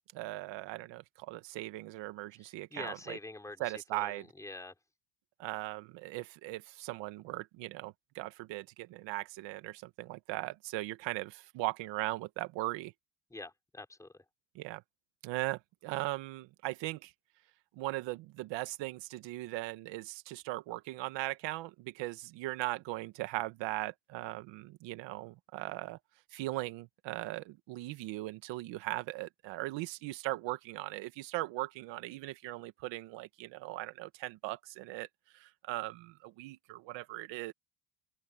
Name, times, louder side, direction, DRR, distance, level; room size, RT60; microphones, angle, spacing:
voice 1, 0.1-3.2 3.6-4.2 5.4-12.9 14.5-14.8 15.2-17.1 17.7-26.0 26.3-35.1 35.3-37.5, right 18 dB, 65° right, 1.7 m, -39 dB
voice 2, 2.4-4.7 13.3-14.2, left 2 dB, 5° left, 4.0 m, -46 dB
open air
cardioid pair, 150°, 48 cm